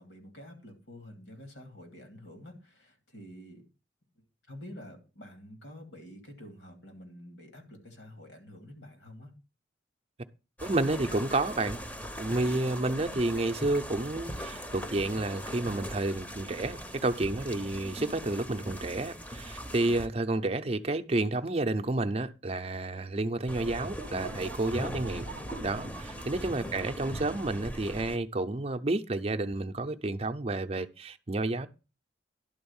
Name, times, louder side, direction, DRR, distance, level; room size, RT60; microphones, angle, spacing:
voice 1, 0.0-3.6 4.5-9.3 25.0-25.4 26.5-27.0, equal, 85° left, 2.5 m, -48 dB
sound 1, 10.6-20.1 23.5-28.2, equal, 10° left, 0.7 m, -40 dB
voice 2, 10.6-11.8 12.2-25.2 25.6-31.7, right 2 dB, 35° right, 0.6 m, -30 dB
sound 2, 23.6-27.2, right 5 dB, 80° right, 0.5 m, -47 dB
11.0 x 4.0 x 7.1 m
head